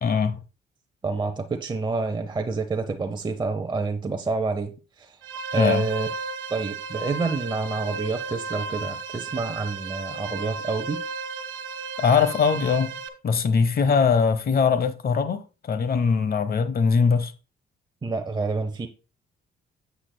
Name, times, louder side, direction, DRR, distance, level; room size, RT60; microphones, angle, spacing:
voice 1, 0.0-0.4 5.6-5.8 12.0-12.9 13.2-17.3, left 5 dB, 50° left, 0.9 m, -21 dB
voice 2, 1.0-4.7 5.0-5.2 5.5-6.1 6.5-11.0 18.0-18.9, right 4 dB, 20° right, 0.8 m, -28 dB
sound 1, 5.2-13.1, right 4 dB, 75° right, 1.3 m, -34 dB
9.8 x 8.3 x 2.3 m
cardioid pair, 90°, 20 cm